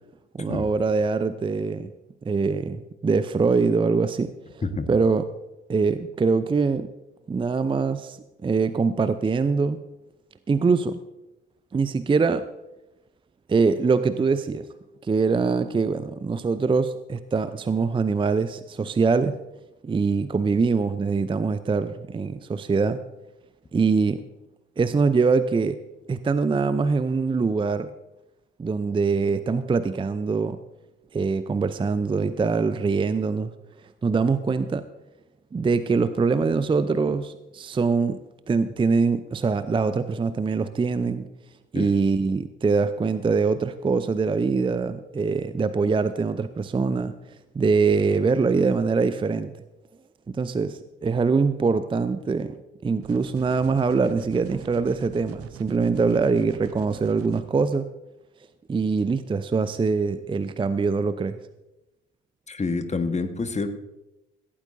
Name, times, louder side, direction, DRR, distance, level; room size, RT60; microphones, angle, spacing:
voice 1, 0.3-1.9 2.3-4.3 4.9-5.3 5.7-6.9 7.3-9.8 10.5-11.0 11.7-12.4 13.5-14.7 15.0-19.4 19.8-23.0 23.7-24.2 24.8-25.8 26.1-27.9 28.6-30.6 31.1-33.5 34.0-34.9 35.5-38.2 38.5-41.3 41.7-47.1 47.5-49.5 50.4-52.6 52.8-57.9 58.7-61.4, right 4 dB, 15° right, 13 dB, 0.6 m, -23 dB
sound 1, 53.0-57.4, right 9 dB, 45° right, 1.2 m, -43 dB
voice 2, 62.5-63.7, left 3 dB, 20° left, 8 dB, 1.5 m, -27 dB
17.0 x 16.5 x 2.7 m, 0.98 s
figure-of-eight pair, 50°, 33 cm